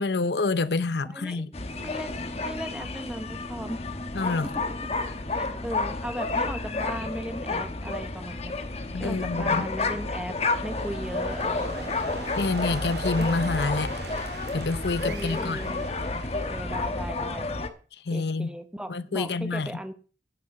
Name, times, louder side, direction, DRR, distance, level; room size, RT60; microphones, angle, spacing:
voice 1, 0.0-1.5 4.1-4.5 8.9-9.7 12.4-13.9 14.5-15.6 18.0-18.5 18.9-19.7, left 3 dB, 75° left, 0.7 m, -27 dB
voice 2, 1.0-3.8 5.3-8.5 9.0-10.3 10.6-11.9 13.2-13.3 15.1-15.8 16.3-17.5 18.1-19.9, equal, 5° right, 0.9 m, -37 dB
sound 1, 1.5-17.7, left 3 dB, 35° left, 1.1 m, -31 dB
sound 2, 10.2-17.1, right 4 dB, 70° right, 2.4 m, -41 dB
10.5 x 8.5 x 6.4 m
head